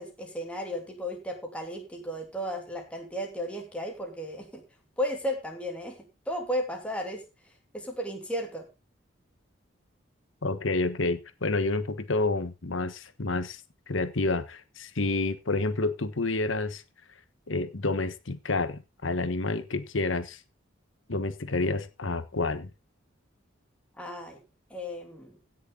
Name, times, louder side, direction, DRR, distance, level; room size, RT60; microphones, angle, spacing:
voice 1, 0.0-4.6 5.0-6.0 6.3-7.2 7.7-8.7 24.0-24.4 24.7-25.4, equal, 5° left, 2.9 m, -34 dB
voice 2, 10.4-13.6 13.9-16.8 17.5-20.4 21.1-22.7, left 3 dB, 75° left, 1.3 m, -29 dB
17.0 x 6.5 x 3.8 m
head